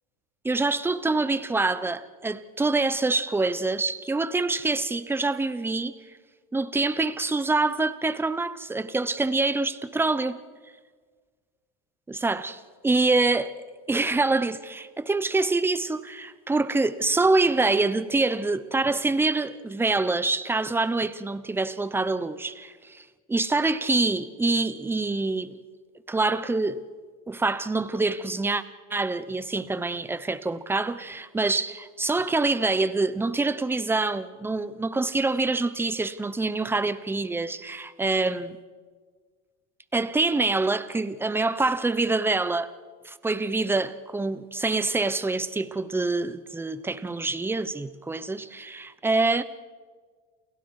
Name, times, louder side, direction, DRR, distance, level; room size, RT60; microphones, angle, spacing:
voice 1, 0.4-5.9 6.5-10.4 12.1-13.5 13.9-25.6 26.1-26.8 27.3-28.6 28.9-38.5 39.9-42.7 43.0-49.4, right 3 dB, 10° right, 0.8 m, -25 dB
29.0 x 28.5 x 4.9 m
cardioid pair, 145°, 29 cm